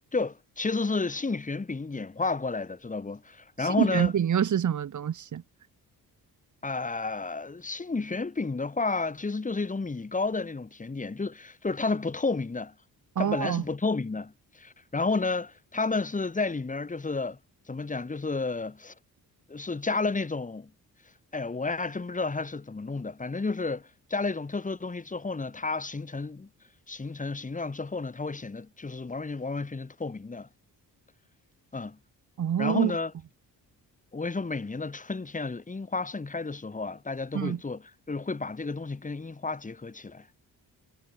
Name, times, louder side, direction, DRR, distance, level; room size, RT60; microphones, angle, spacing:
voice 1, 0.1-4.1 6.6-12.7 13.2-17.4 17.7-18.9 19.5-20.7 21.3-26.5 26.9-30.5 31.7-32.0 32.6-33.1 34.1-40.3, left 3 dB, 20° left, 5.2 m, -31 dB
voice 2, 3.8-5.4 13.2-13.6 32.4-32.9 37.3-37.6, right 9 dB, 50° right, 2.1 m, -26 dB
wide cardioid pair, 155°, 37 cm